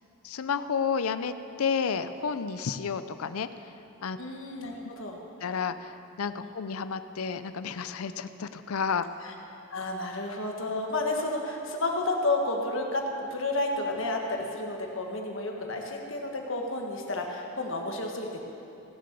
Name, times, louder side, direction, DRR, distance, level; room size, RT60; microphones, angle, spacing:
voice 1, 0.2-3.5 4.0-4.2 5.4-9.0, left 6 dB, 90° left, 12 dB, 0.5 m, -31 dB
voice 2, 4.2-5.2 6.4-6.5 9.2-9.3 9.7-18.4, left 2 dB, 65° left, 1 dB, 1.6 m, -31 dB
17.0 x 7.8 x 6.8 m, 3.0 s
head